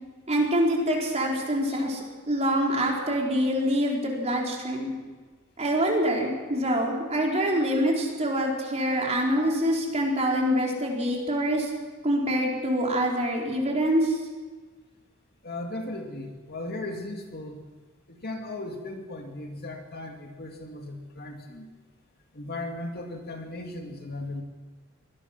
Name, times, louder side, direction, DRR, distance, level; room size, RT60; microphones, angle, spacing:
voice 1, 0.3-4.9 5.6-11.7 12.0-14.2, equal, 30° right, -1 dB, 4.5 m, -25 dB
voice 2, 15.4-17.6 18.1-21.7 22.3-24.4, left 2 dB, 50° left, 3 dB, 2.4 m, -37 dB
23.5 x 19.0 x 6.1 m, 1.3 s
head